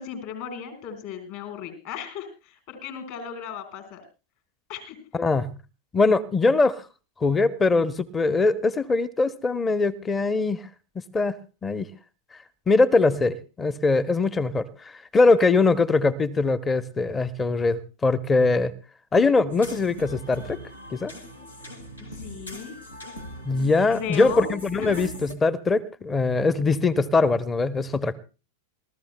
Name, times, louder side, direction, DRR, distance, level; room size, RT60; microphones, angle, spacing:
voice 1, 0.0-4.0 4.7-5.0 22.0-22.8 23.9-24.5 24.8-25.0, left 8 dB, 50° left, 8 dB, 4.3 m, -36 dB
voice 2, 5.1-5.5 5.9-6.8 7.2-10.6 11.1-11.4 11.6-11.9 12.7-18.7 19.1-20.6 20.9-21.1 23.4-28.2, left 3 dB, 15° left, 15 dB, 0.8 m, -22 dB
sound 1, 19.5-25.3, equal, 85° left, 2.3 m, -40 dB
27.0 x 14.0 x 2.2 m, 0.32 s
figure-of-eight pair, 90°, 0 cm